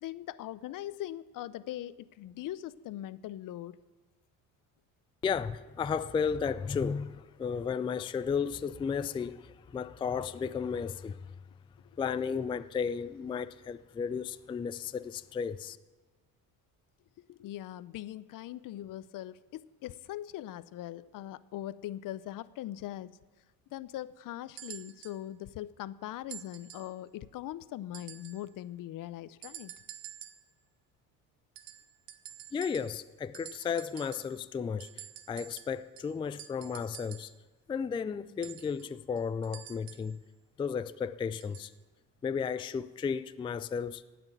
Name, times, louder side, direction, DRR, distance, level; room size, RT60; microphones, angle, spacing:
voice 1, 0.0-3.8 17.3-23.1 23.7-29.7, left 13 dB, 60° left, 0.6 m, -41 dB
voice 2, 5.2-11.2 12.0-15.8 32.5-37.3 37.7-40.2 40.6-41.7 42.2-44.0, left 6 dB, 15° left, 0.3 m, -34 dB
sound 1, 24.6-25.2 26.3-27.0 27.9-28.5 29.4-30.5 31.6-33.1 33.3-34.4 34.8-37.4 38.4-40.2 41.4-41.7 42.7-42.8, right 11 dB, 70° right, 1.0 m, -49 dB
16.0 x 6.1 x 9.0 m
cardioid pair, 95°, 37 cm